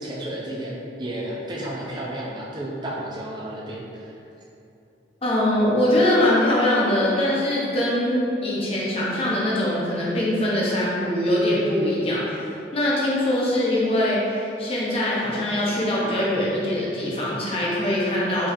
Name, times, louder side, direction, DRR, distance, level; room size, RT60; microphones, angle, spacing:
voice 1, 0.0-4.1, right 1 dB, 25° right, -4 dB, 0.5 m, -32 dB
voice 2, 5.2-12.4 12.7-18.5, left 1 dB, 30° left, -6 dB, 0.7 m, -22 dB
3.9 x 3.1 x 2.6 m, 2.7 s
head